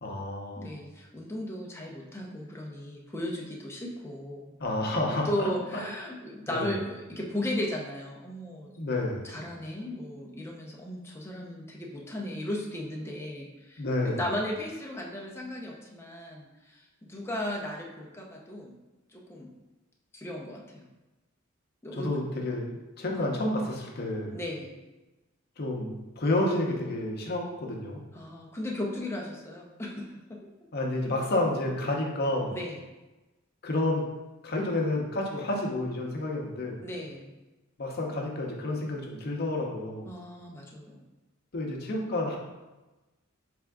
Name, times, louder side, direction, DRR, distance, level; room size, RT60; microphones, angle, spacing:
voice 1, 0.0-0.7 4.6-5.8 6.5-6.7 8.8-9.3 13.8-14.2 21.9-24.4 25.6-28.0 30.7-32.6 33.6-34.1 34.4-36.8 37.8-40.1 41.5-42.4, left 1 dB, 50° left, 0 dB, 0.7 m, -30 dB
voice 2, 0.6-4.5 5.2-8.7 9.2-18.7 19.1-19.5 20.1-20.8 21.8-22.1 23.1-23.3 24.3-24.8 28.1-30.5 32.5-32.8 36.8-37.3 40.1-41.0, left 1 dB, 10° left, -2 dB, 0.6 m, -36 dB
3.6 x 3.4 x 3.5 m, 1.1 s
head